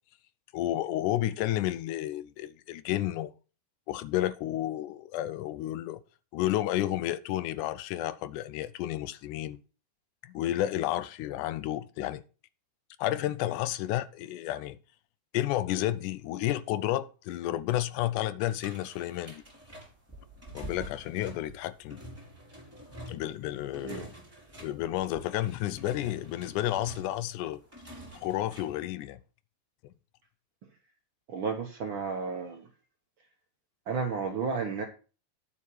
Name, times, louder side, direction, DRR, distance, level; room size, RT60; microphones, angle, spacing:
voice 1, 0.5-3.3 3.9-6.0 6.3-9.6 10.2-12.2 13.0-14.8 15.3-19.4 20.5-22.0 23.1-24.1 24.6-27.6 28.2-29.2 29.8-29.9, left 14 dB, 80° left, 2.0 m, -31 dB
sound 1, 18.4-28.8, right 1 dB, 5° right, 4.5 m, -47 dB
voice 2, 31.3-32.7 33.9-34.8, right 5 dB, 80° right, 1.1 m, -32 dB
9.6 x 7.5 x 4.5 m
omnidirectional pair, 3.8 m